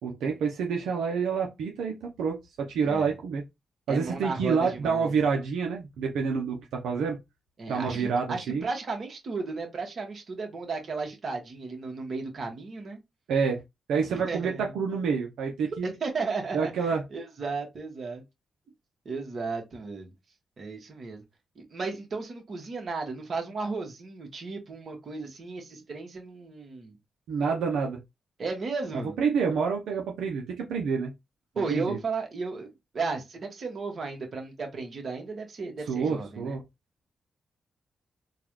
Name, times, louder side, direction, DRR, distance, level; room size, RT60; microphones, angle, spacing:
voice 1, 0.0-3.4 3.9-7.2 7.7-8.7 13.3-13.6 13.9-15.9 16.5-17.0 27.3-28.0 28.9-31.1 31.7-32.0 35.9-36.6, right 5 dB, 90° right, 0.8 m, -28 dB
voice 2, 2.8-3.1 3.9-5.1 7.6-13.0 14.1-14.7 15.6-18.2 19.0-20.1 20.6-21.2 21.5-26.9 28.4-29.1 31.5-36.6, right 4 dB, 55° right, 1.6 m, -34 dB
3.8 x 2.5 x 3.2 m
cardioid pair, 70°, 0 cm